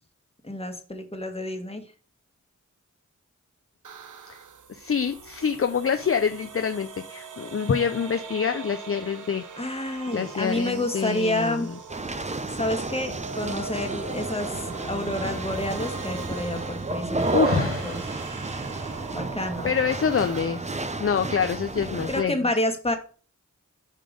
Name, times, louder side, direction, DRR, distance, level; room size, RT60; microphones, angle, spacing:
voice 1, 0.4-1.8 9.6-11.7 12.5-18.0 19.1-19.7 22.1-22.9, left 1 dB, 20° left, 5 dB, 1.4 m, -29 dB
sound 1, 3.8-20.4, right 5 dB, 75° right, 0.8 m, -41 dB
voice 2, 4.7-9.4 10.1-11.7 17.3-18.0 19.6-20.7 21.0-22.3, left 6 dB, 45° left, 7 dB, 0.5 m, -26 dB
sound 2, 11.9-22.2, right 2 dB, 20° right, 0.6 m, -31 dB
5.8 x 5.1 x 5.1 m, 0.38 s
wide cardioid pair, 75°, 31 cm